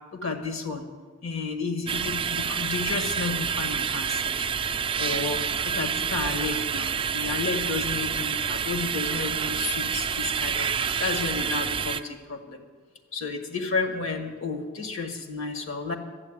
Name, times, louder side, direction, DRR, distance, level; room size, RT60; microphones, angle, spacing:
voice 1, 0.1-0.8 1.2-12.6 13.1-16.0, left 4 dB, 65° left, 5 dB, 1.6 m, -32 dB
sound 1, 1.9-12.0, right 7 dB, 25° right, 0.4 m, -28 dB
12.0 x 7.9 x 8.9 m, 1.5 s
head